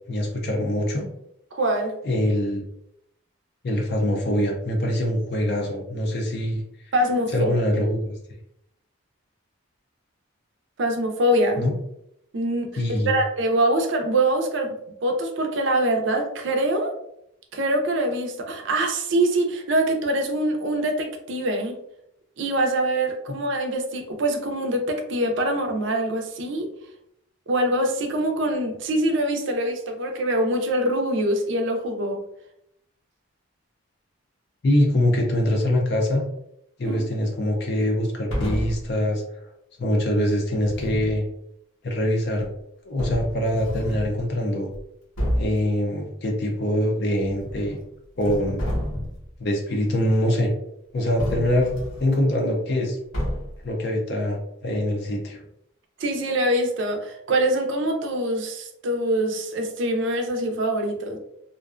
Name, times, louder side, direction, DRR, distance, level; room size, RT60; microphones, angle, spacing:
voice 1, 0.1-1.1 2.0-2.6 3.6-6.6 7.3-8.2 11.6-11.7 12.8-13.1 34.6-36.2 36.8-39.4 39.8-41.2 41.8-42.5 42.8-44.7 45.4-47.8 48.2-48.6 49.4-50.5 50.9-51.7 52.0-53.0 53.6-55.4, left 1 dB, 50° left, 0 dB, 0.5 m, -24 dB
voice 2, 1.5-2.0 6.9-7.5 10.8-11.6 12.3-17.0 17.5-21.8 22.4-26.7 27.5-32.2 36.8-37.0 56.0-61.2, right 1 dB, 60° right, 4 dB, 0.4 m, -24 dB
sound 1, 38.3-38.9 40.6-41.2 42.4-42.5 43.0-44.2 44.7-44.8 45.2-45.6 47.2-47.9 48.2-49.3 51.2-52.2 53.1-53.7, equal, 85° left, 0.8 m, -29 dB
2.5 x 2.1 x 2.4 m, 0.77 s
head